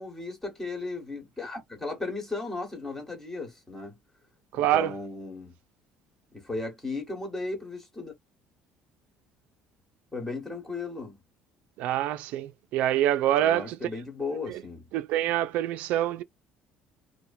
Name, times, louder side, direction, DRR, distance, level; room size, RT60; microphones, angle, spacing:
voice 1, 0.0-4.0 4.6-5.5 6.3-8.1 10.1-11.2 13.4-14.8, left 3 dB, 10° left, 1.4 m, -35 dB
voice 2, 4.5-4.9 11.8-13.8 14.5-14.6 14.9-16.2, right 12 dB, 70° right, 0.4 m, -26 dB
2.9 x 2.1 x 2.6 m
cardioid pair, 130°, 3 cm